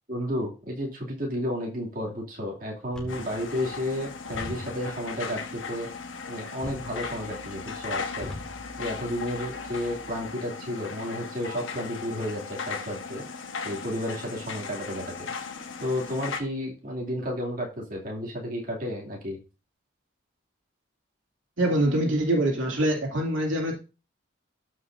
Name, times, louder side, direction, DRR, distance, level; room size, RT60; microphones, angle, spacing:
voice 1, 0.1-5.9 6.3-8.3 8.8-13.2 13.6-15.3 15.8-19.4, equal, 45° right, -2 dB, 2.6 m, -32 dB
sound 1, 2.9-10.3, left 1 dB, 5° left, 1.8 m, -45 dB
sound 2, 3.1-16.4, left 5 dB, 80° left, 1.3 m, -37 dB
voice 2, 21.6-23.7, right 1 dB, 85° right, 0 dB, 2.6 m, -24 dB
13.5 x 5.8 x 2.6 m, 0.31 s
head